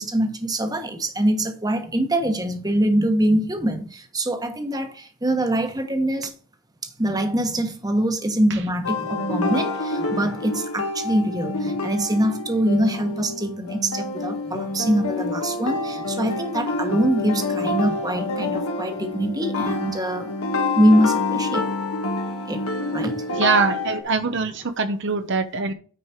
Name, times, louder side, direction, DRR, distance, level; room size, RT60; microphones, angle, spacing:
voice 1, 0.0-6.3 6.8-20.3 20.7-21.7 22.5-22.6 22.9-23.2, right 1 dB, 20° right, 1.2 m, -23 dB
sound 1, 8.8-24.0, left 3 dB, 80° left, 1.6 m, -27 dB
voice 2, 23.3-25.7, right 4 dB, 55° right, 0.9 m, -23 dB
9.4 x 4.9 x 4.4 m
head